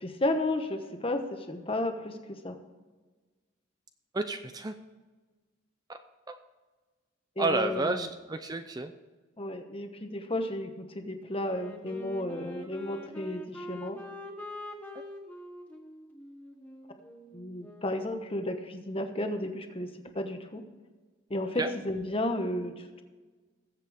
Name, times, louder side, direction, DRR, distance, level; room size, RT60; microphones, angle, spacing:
voice 1, 0.0-2.2 2.4-2.6 7.4-8.1 9.4-14.0 17.3-20.6 21.3-23.0, left 1 dB, 25° left, 6 dB, 1.1 m, -33 dB
voice 2, 4.1-4.7 7.4-8.9 21.6-21.7, right 3 dB, 20° right, 7 dB, 0.5 m, -30 dB
Wind instrument woodwind instrument, 11.4-18.1, left 1 dB, 5° left, 1.3 m, -45 dB
20.5 x 7.8 x 3.5 m, 1.3 s
head